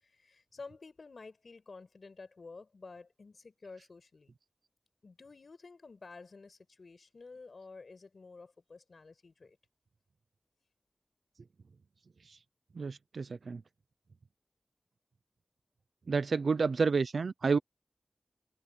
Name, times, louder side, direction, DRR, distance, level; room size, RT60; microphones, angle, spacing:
voice 1, 0.0-4.3 5.0-9.6, left 4 dB, 75° left, 5.4 m, -51 dB
voice 2, 12.8-13.6 16.1-17.6, right 4 dB, 90° right, 0.5 m, -30 dB
cardioid pair, 45°, 0 cm